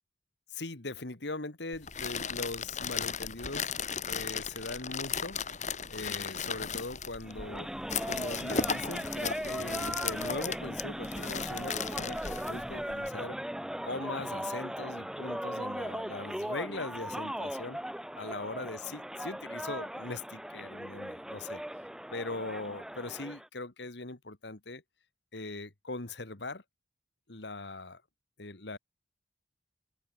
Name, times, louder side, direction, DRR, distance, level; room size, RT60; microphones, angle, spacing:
voice 1, 0.5-3.7 4.1-5.4 5.9-7.7 8.0-13.4 13.8-17.8 18.2-21.6 22.1-24.8 25.3-26.6 27.3-28.0 28.4-28.8, left 2 dB, 70° left, 1.9 m, -40 dB
sound 1, 1.7-13.1, left 6 dB, 40° left, 3.6 m, -36 dB
sound 2, 7.2-23.5, equal, 5° right, 0.8 m, -38 dB
head